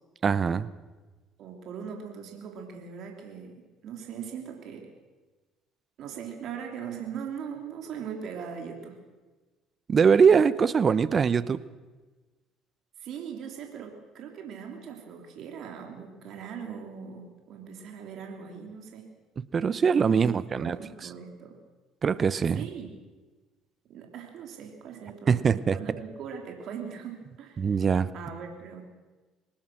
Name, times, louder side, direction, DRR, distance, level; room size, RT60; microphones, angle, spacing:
voice 1, 0.2-0.7 9.9-11.6 19.5-20.8 22.0-22.6 25.3-25.8 27.6-28.1, right 6 dB, 40° right, 17 dB, 0.9 m, -22 dB
voice 2, 1.4-4.9 6.0-9.0 13.0-19.1 19.9-21.6 22.5-22.9 23.9-27.8 28.1-28.8, right 7 dB, 60° right, 2 dB, 3.4 m, -40 dB
23.5 x 19.5 x 6.2 m, 1.2 s
hypercardioid pair, 70°, 0 cm